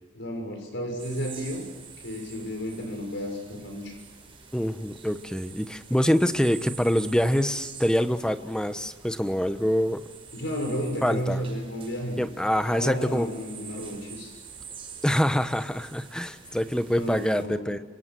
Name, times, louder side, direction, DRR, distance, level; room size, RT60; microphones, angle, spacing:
voice 1, 0.1-1.6 2.0-4.0 10.3-12.2 12.7-14.3 16.9-17.7, equal, 60° left, 3 dB, 6.5 m, -32 dB
sound 1, 1.0-17.4, right 6 dB, 25° right, 5.8 m, -46 dB
voice 2, 4.5-10.0 11.0-11.4 12.2-13.3 15.0-17.8, equal, 5° left, 9 dB, 1.1 m, -25 dB
27.0 x 26.0 x 7.8 m, 1.3 s
head